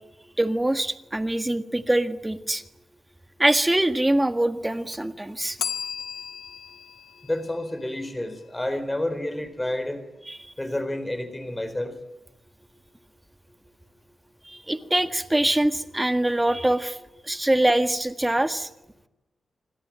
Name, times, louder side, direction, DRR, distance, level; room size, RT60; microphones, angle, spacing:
voice 1, 0.4-2.6 3.4-5.6 10.3-10.4 14.5-17.0 17.3-18.7, right 1 dB, 10° right, 9 dB, 1.7 m, -23 dB
Bell, 5.6-8.4, left 7 dB, 80° left, 2.0 m, -36 dB
voice 2, 7.2-10.0 10.6-12.0 16.2-16.3, left 1 dB, 10° left, 10 dB, 4.2 m, -30 dB
26.5 x 25.5 x 8.9 m, 0.89 s
wide cardioid pair, 155°, 0 cm